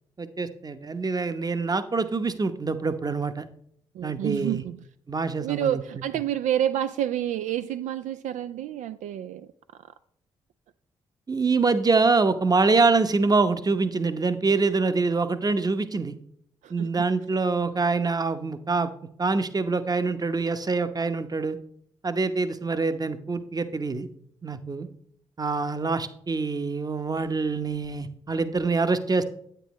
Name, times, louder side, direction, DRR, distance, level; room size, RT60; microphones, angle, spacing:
voice 1, 0.2-3.4 4.0-4.6 5.1-5.8 11.3-16.1 16.7-18.9 19.2-21.6 22.0-24.1 24.4-24.9 25.4-29.2, right 4 dB, 30° right, 11 dB, 0.9 m, -25 dB
voice 2, 3.9-4.8 5.4-9.5 16.6-17.0, right 11 dB, 70° right, 11 dB, 0.4 m, -29 dB
9.0 x 8.9 x 3.1 m, 0.68 s
hypercardioid pair, 40°, 13 cm